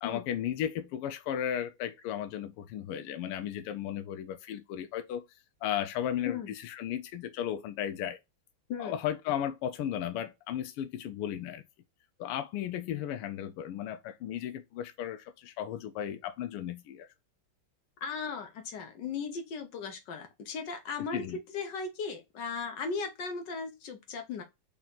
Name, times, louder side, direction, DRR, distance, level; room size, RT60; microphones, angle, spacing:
voice 1, 0.0-5.3 5.6-6.4 6.6-8.2 8.8-11.6 12.2-17.1 21.1-21.4, left 10 dB, 85° left, 1.5 m, -35 dB
voice 2, 18.0-24.4, left 5 dB, 65° left, 1.3 m, -37 dB
4.4 x 2.9 x 3.9 m
omnidirectional pair, 2.4 m